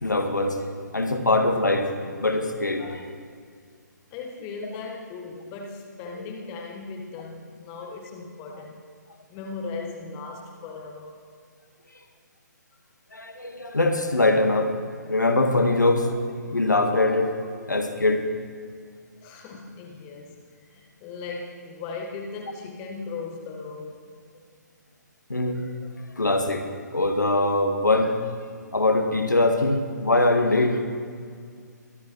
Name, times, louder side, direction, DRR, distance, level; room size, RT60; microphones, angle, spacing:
voice 1, 0.0-3.1 13.1-14.7 15.1-18.2 25.3-25.9 26.2-26.7 26.9-28.2 28.7-30.8, left 2 dB, 75° left, 5 dB, 1.4 m, -23 dB
voice 2, 4.1-8.8 9.3-11.2 19.2-20.4 20.7-24.0, left 4 dB, 20° left, 2 dB, 1.2 m, -37 dB
22.5 x 10.0 x 3.0 m, 2.1 s
figure-of-eight pair, 135°, 10 cm